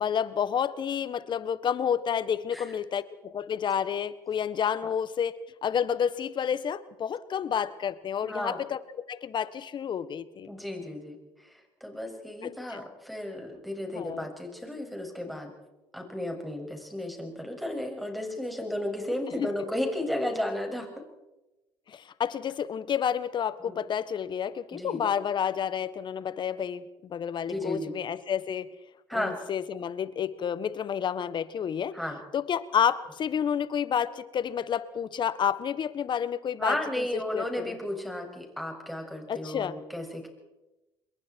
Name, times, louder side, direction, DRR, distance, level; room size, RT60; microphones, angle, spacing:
voice 1, 0.0-5.3 5.6-8.8 9.1-10.5 12.4-12.8 13.9-14.3 19.4-19.5 21.9-28.7 29.1-32.0 32.3-37.0 37.3-37.8 39.3-39.8, left 8 dB, 50° left, 15 dB, 1.4 m, -30 dB
voice 2, 8.2-8.6 10.5-15.5 15.9-20.9 23.7-23.8 24.7-25.0 27.5-27.9 29.1-29.4 31.9-32.2 36.6-40.3, left 1 dB, ahead, 2 dB, 7.0 m, -34 dB
27.5 x 22.0 x 4.7 m, 0.99 s
supercardioid pair, 70°, 10 cm